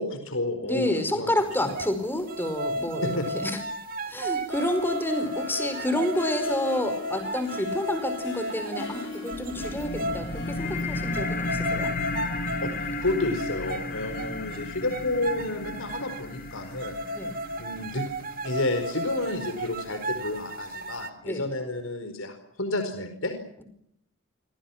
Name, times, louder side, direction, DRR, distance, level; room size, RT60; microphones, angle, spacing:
voice 1, 0.0-1.3 3.0-3.4 12.6-17.0 17.6-18.0 18.4-23.3, left 2 dB, 80° left, 8 dB, 4.8 m, -30 dB
voice 2, 0.6-3.6 4.1-11.9 17.1-17.3 21.2-21.5, left 1 dB, 10° left, 9 dB, 4.8 m, -29 dB
sound 1, 1.5-1.9 2.3-10.4 10.8-10.9 11.1-12.8 13.1-13.9 14.2-14.6 14.9-16.2 16.8-21.1, right 1 dB, 45° right, 2.0 m, -34 dB
Harp, 4.2-13.2, left 3 dB, 60° left, 5.0 m, -41 dB
sound 2, 9.3-20.3, left 2 dB, 45° left, 2.7 m, -34 dB
28.5 x 26.0 x 5.9 m, 0.73 s
head